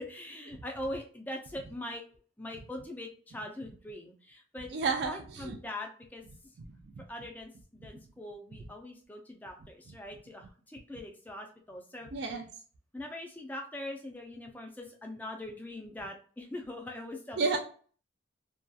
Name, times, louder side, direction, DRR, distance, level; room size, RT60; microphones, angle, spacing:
voice 1, 0.0-2.0 2.4-4.7 5.0-6.2 7.1-12.1 12.9-17.5, left 1 dB, 10° left, 2 dB, 0.4 m, -42 dB
voice 2, 4.7-5.6 7.0-7.1 12.1-12.4 17.4-17.6, right 4 dB, 70° right, 3 dB, 0.4 m, -31 dB
2.7 x 2.3 x 2.3 m, 0.43 s
head